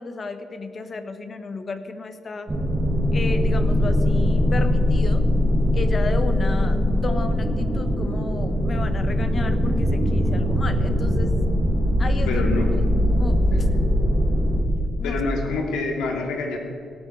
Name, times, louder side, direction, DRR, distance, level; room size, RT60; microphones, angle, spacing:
voice 1, 0.0-2.5 3.1-5.3 5.7-11.3 12.0-12.4 12.7-12.8 13.1-13.7 15.0-15.2, left 3 dB, 40° left, 9 dB, 1.2 m, -33 dB
sound 1, 2.5-14.6, left 1 dB, 25° right, 2.6 m, -21 dB
voice 2, 12.3-12.7 15.0-16.6, left 3 dB, 85° left, 1 dB, 2.9 m, -26 dB
18.0 x 13.5 x 4.8 m, 2.5 s
cardioid pair, 90°, 0 cm